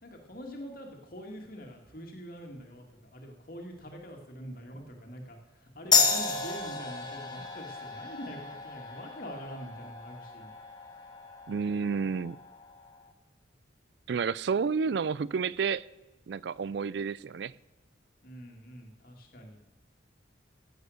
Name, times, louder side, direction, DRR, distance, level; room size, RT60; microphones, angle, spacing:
voice 1, 0.0-10.5 18.2-19.6, equal, 50° left, 2 dB, 2.1 m, -44 dB
sound 1, 5.9-13.0, left 5 dB, 20° left, 1.2 m, -32 dB
voice 2, 11.5-12.4 14.1-15.9 16.3-17.5, right 5 dB, 65° right, 21 dB, 0.4 m, -30 dB
15.5 x 8.1 x 6.4 m, 1.1 s
head